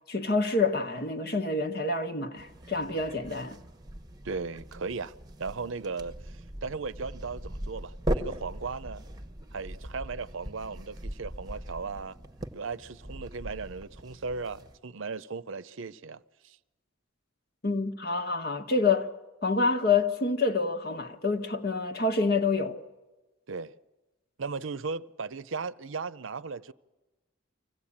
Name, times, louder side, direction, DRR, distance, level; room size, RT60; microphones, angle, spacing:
voice 1, 0.1-3.6 17.6-19.1 19.4-22.8, left 3 dB, 50° left, 1.5 m, -27 dB
sound 1, 2.4-14.8, right 1 dB, 20° right, 1.1 m, -39 dB
voice 2, 4.2-5.1 5.4-9.0 9.5-12.2 12.5-16.6 23.5-23.7 24.4-26.7, right 4 dB, 75° right, 0.6 m, -37 dB
25.0 x 16.5 x 8.7 m
head